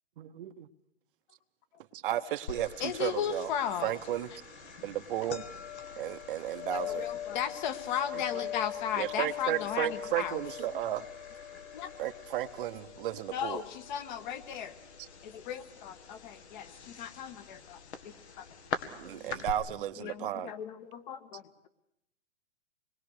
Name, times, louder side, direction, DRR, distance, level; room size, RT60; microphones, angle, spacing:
voice 1, 0.2-0.7 1.9-3.5 3.8-4.3 4.8-5.4 6.0-7.1 8.1-8.5 9.0-11.1 12.0-13.6 15.0-15.1 19.0-20.5, right 12 dB, 45° right, 10 dB, 1.1 m, -34 dB
sound 1, 2.5-12.7, left 1 dB, 90° left, 4.1 m, -56 dB
sound 2, 2.5-19.5, left 9 dB, 65° left, 2.3 m, -42 dB
voice 2, 2.8-3.9 6.7-10.4 11.7-11.9 13.3-14.7 15.2-17.8 18.4-18.5 20.0-21.7, left 9 dB, 40° left, 10 dB, 1.8 m, -36 dB
voice 3, 18.9-19.7 20.0-20.3, right 2 dB, ahead, 3 dB, 1.5 m, -55 dB
26.0 x 21.0 x 6.6 m, 0.80 s
hypercardioid pair, 145°, 37 cm